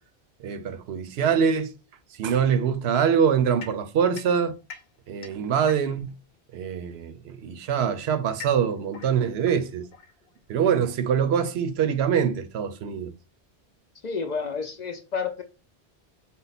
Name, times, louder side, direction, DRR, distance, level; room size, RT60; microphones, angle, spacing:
voice 1, 0.4-1.7 2.2-4.5 5.1-6.1 6.5-9.8 10.5-13.1, right 7 dB, 80° right, 0.8 m, -24 dB
sound 1, 3.6-6.2 7.2-10.6, left 6 dB, 70° left, 0.9 m, -46 dB
voice 2, 14.0-15.4, left 5 dB, 55° left, 0.5 m, -30 dB
5.4 x 2.1 x 4.0 m
omnidirectional pair, 1.1 m